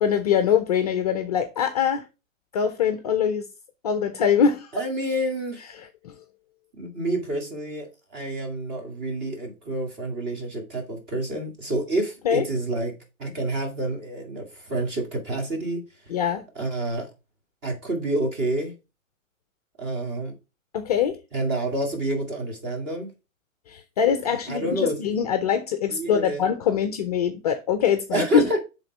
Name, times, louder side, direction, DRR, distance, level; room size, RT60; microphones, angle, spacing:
voice 1, 0.0-2.1 2.5-3.5 3.8-4.7 5.8-6.1 12.2-12.4 16.1-16.4 20.7-21.2 23.7-28.6, left 7 dB, 30° left, 0.5 m, -23 dB
voice 2, 4.7-5.6 6.8-7.9 8.1-12.9 13.2-15.8 16.6-17.1 17.6-18.7 19.8-20.3 21.3-23.1 24.5-25.0 25.9-26.5 28.1-28.6, right 1 dB, 25° right, 2.1 m, -28 dB
7.5 x 3.7 x 4.5 m
hypercardioid pair, 150°, 40 cm